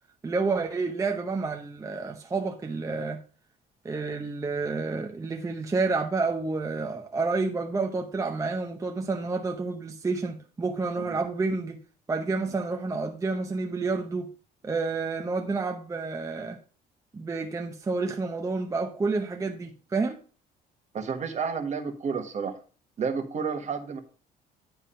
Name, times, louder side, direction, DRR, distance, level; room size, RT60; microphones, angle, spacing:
voice 1, 0.2-3.2 3.8-11.8 12.1-14.3 14.6-16.6 17.1-20.2, right 3 dB, 20° right, 0.7 m, -29 dB
voice 2, 20.9-22.5 23.0-24.0, right 5 dB, 45° right, 1.4 m, -30 dB
10.0 x 3.6 x 5.6 m
cardioid pair, 110°, 17 cm